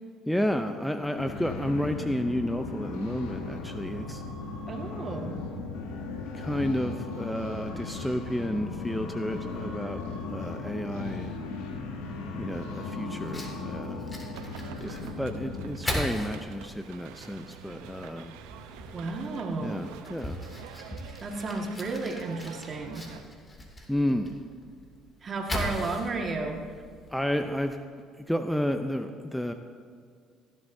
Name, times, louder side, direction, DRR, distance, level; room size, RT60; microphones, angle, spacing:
voice 1, 0.3-4.2 6.3-10.0 10.3-11.3 12.3-14.1 14.8-18.3 19.6-20.5 23.9-24.4 27.1-27.8 28.2-29.5, equal, 5° left, 7 dB, 0.6 m, -31 dB
sound 1, 1.2-15.7, left 3 dB, 80° left, 1.4 m, -37 dB
voice 2, 4.7-5.4 18.9-19.9 21.2-23.1 25.2-26.6, right 3 dB, 40° right, 2 dB, 1.8 m, -33 dB
Fire, 13.2-27.8, left 1 dB, 25° left, 2.6 m, -40 dB
sound 2, 14.3-23.2, right 8 dB, 80° right, 0.7 m, -47 dB
16.5 x 11.5 x 2.7 m, 2.1 s
hypercardioid pair, 65°, 0 cm